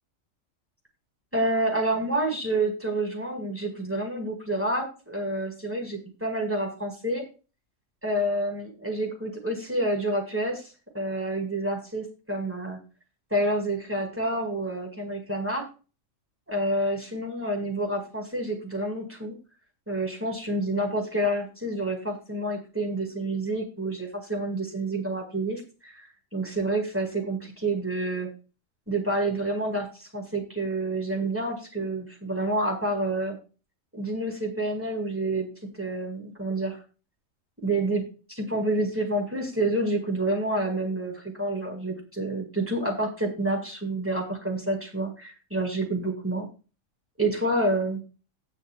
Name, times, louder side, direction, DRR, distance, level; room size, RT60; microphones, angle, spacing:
voice 1, 1.3-7.2 8.0-10.6 10.9-12.8 13.3-15.6 16.5-19.3 19.9-28.3 28.9-33.4 33.9-35.5 35.7-36.8 37.6-38.0 38.3-46.4 47.2-48.0, right 1 dB, 10° right, 1 dB, 4.8 m, -28 dB
19.0 x 6.8 x 2.4 m, 0.32 s
omnidirectional pair, 1.4 m